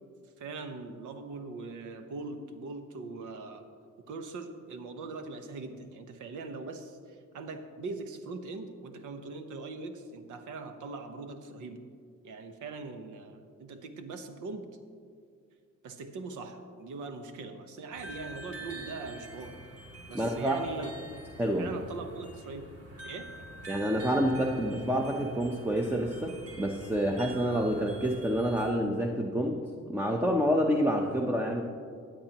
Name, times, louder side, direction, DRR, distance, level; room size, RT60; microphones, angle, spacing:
voice 1, 0.4-3.7 4.1-11.9 12.2-14.8 15.8-19.6 20.1-20.9 21.6-22.7 23.0-23.3, right 3 dB, 80° right, 7 dB, 1.0 m, -41 dB
sound 1, 17.9-28.7, right 2 dB, 50° right, 2.2 m, -46 dB
voice 2, 20.1-20.9 21.4-21.7 23.7-29.6 29.9-31.6, equal, 5° right, 2 dB, 0.7 m, -28 dB
15.5 x 9.0 x 2.9 m, 2.1 s
cardioid pair, 90°, 30 cm